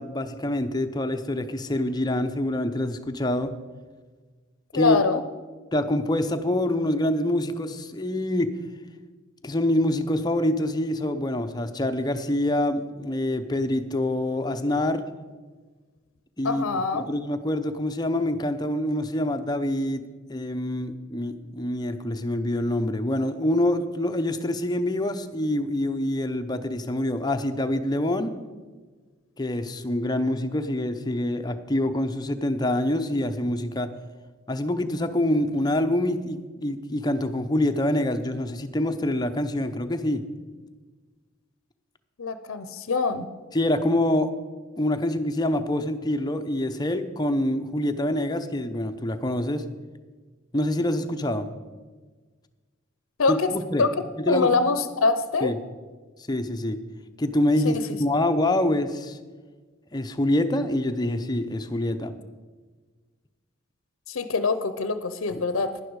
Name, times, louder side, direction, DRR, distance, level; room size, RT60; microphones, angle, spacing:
voice 1, 0.0-3.5 4.7-5.0 5.7-8.5 9.4-15.0 16.4-16.6 16.9-20.0 20.3-28.3 29.4-33.9 34.5-40.2 43.5-44.3 44.8-49.6 50.5-51.5 53.3-53.9 54.2-54.5 55.4-55.5 56.3-56.8 57.2-59.2 59.9-62.1 65.3-65.4, left 1 dB, 20° left, 7 dB, 0.6 m, -26 dB
voice 2, 4.8-5.2 16.4-17.1 42.2-43.3 53.2-53.5 53.8-53.9 54.3-55.5 57.6-57.7 64.1-65.7, left 4 dB, 90° left, 11 dB, 0.6 m, -24 dB
11.5 x 10.5 x 4.7 m, 1.4 s
head